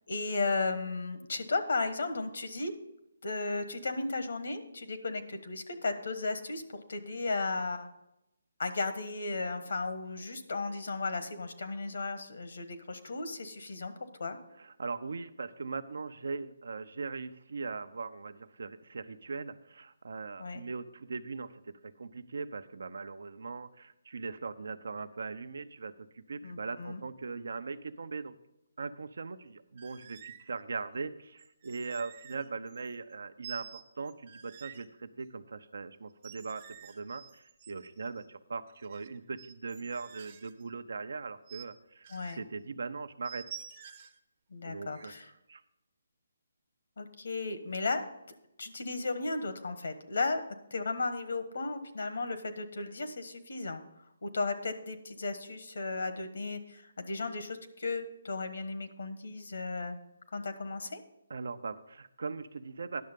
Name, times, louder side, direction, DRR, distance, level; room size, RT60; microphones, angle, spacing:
voice 1, 0.1-2.7 3.2-7.9 8.6-13.9 14.2-14.4 20.4-20.6 26.4-27.0 42.1-42.4 44.5-45.3 47.0-48.0 48.6-50.4 50.7-53.8 54.2-60.0 60.3-61.0, left 3 dB, 70° left, 8 dB, 1.4 m, -35 dB
voice 2, 14.6-28.3 28.8-42.1 42.4-43.5 44.6-45.1 45.5-45.6 61.3-63.0, right 4 dB, 70° right, 11 dB, 0.7 m, -40 dB
sound 1, 29.8-30.5 31.4-33.1 33.4-34.9 36.1-38.2 38.7-40.7 41.5-41.7 42.0-42.4 43.2-44.2 44.9-45.2, right 9 dB, 30° right, 0.8 m, -50 dB
10.5 x 6.5 x 5.3 m, 0.86 s
hypercardioid pair, 165°, 0 cm